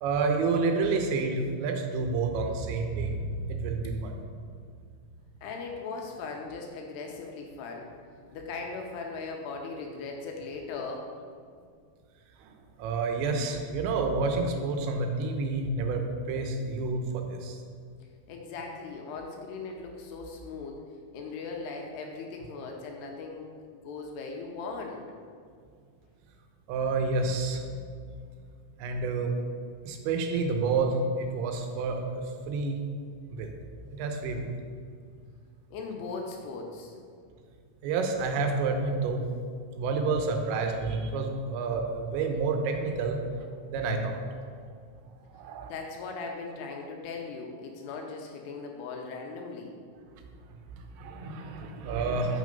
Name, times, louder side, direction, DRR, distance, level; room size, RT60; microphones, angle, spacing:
voice 1, 0.0-4.2 12.4-17.6 26.7-27.6 28.8-29.3 29.8-32.8 33.3-33.5 33.9-34.5 37.8-39.2 39.8-43.2 43.7-44.2 45.3-45.7 50.8-52.4, right 3 dB, 85° right, 4 dB, 3.1 m, -29 dB
voice 2, 5.4-7.9 8.3-11.1 18.3-20.8 21.1-23.5 23.8-25.0 35.7-37.0 45.7-49.8, left 4 dB, 80° left, 2 dB, 2.6 m, -38 dB
6.5 x 6.3 x 5.2 m, 2.1 s
omnidirectional pair, 5.1 m